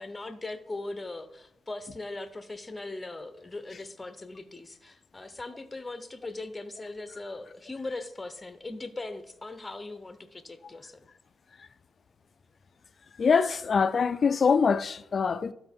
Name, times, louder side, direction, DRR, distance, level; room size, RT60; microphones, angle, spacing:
voice 1, 0.0-11.0, left 2 dB, 15° left, 0.7 m, -39 dB
voice 2, 13.2-15.5, left 5 dB, 40° left, 0.4 m, -24 dB
12.5 x 4.2 x 3.6 m
cardioid pair, 115°, 0 cm